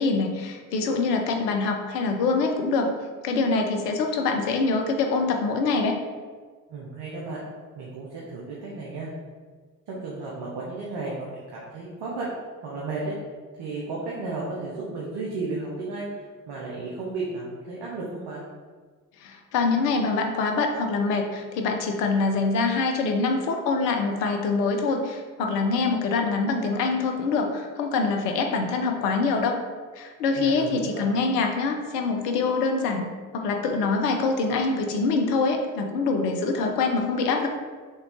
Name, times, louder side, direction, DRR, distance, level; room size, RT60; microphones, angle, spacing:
voice 1, 0.0-2.9 3.2-6.0 19.2-29.6 30.0-33.1 33.3-37.5, left 4 dB, 85° left, 4 dB, 0.6 m, -24 dB
voice 2, 6.7-7.4 7.7-9.1 9.9-12.3 12.6-13.2 13.6-18.4 30.3-31.1, right 3 dB, 60° right, -5 dB, 1.1 m, -33 dB
4.1 x 3.4 x 3.7 m, 1.5 s
hypercardioid pair, 40°, 46 cm